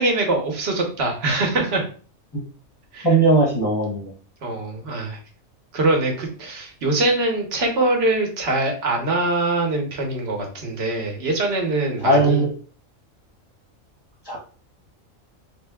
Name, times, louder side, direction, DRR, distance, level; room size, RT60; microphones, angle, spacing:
voice 1, 0.0-1.8 2.9-3.1 4.4-5.2 5.7-12.4, right 2 dB, 50° right, 2 dB, 1.2 m, -23 dB
voice 2, 3.0-4.1 12.0-12.5 14.3-14.4, right 2 dB, 20° left, -4 dB, 0.8 m, -18 dB
3.6 x 2.2 x 3.5 m, 0.39 s
omnidirectional pair, 1.4 m